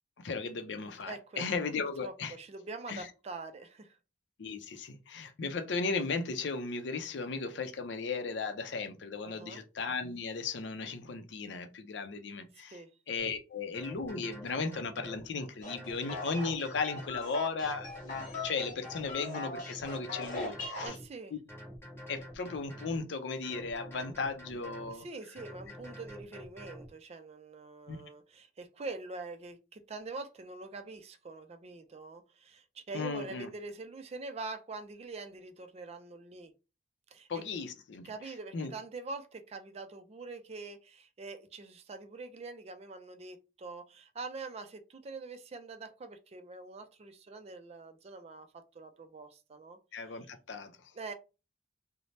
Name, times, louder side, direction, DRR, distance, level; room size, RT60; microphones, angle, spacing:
voice 1, 0.2-2.4 2.9-3.1 4.4-12.8 13.1-21.0 22.1-25.1 27.9-28.0 32.9-33.5 37.3-38.0 38.5-38.7 49.9-50.9, left 4 dB, 70° left, 0.5 m, -36 dB
voice 2, 1.0-1.7 2.0-4.0 9.2-9.6 12.7-12.9 20.8-21.3 24.9-36.5 37.1-37.3 38.0-48.5 48.7-49.8 50.9-51.1, right 3 dB, 35° right, 0.4 m, -44 dB
sound 1, 13.2-13.3 13.7-15.3 15.7-17.2 17.6-19.1 19.5-21.1 21.5-23.0 23.4-24.9 25.4-26.9, equal, 15° left, 0.9 m, -48 dB
sound 2, 15.6-20.9, left 3 dB, 45° left, 1.1 m, -40 dB
2.6 x 2.0 x 3.1 m
head